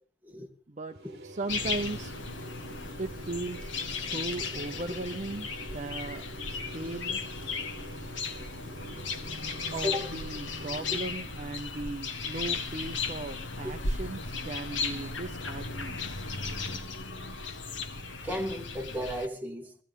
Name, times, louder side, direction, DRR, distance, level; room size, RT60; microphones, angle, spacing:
sound 1, 0.9-18.2, left 1 dB, 55° left, 8.0 m, -60 dB
sound 2, 0.9-11.3, right 2 dB, 55° right, 1.4 m, -48 dB
voice 1, 1.2-2.1 3.0-7.2 9.7-16.0, right 2 dB, 40° right, 0.7 m, -37 dB
sound 3, 1.5-19.3, left 4 dB, 75° left, 1.5 m, -36 dB
voice 2, 4.1-4.5 4.9-5.0 8.4-8.5 8.9-9.2 9.8-10.1 10.9-11.0 13.6-13.7 18.2-19.8, equal, 10° right, 1.8 m, -35 dB
16.0 x 14.5 x 5.2 m
head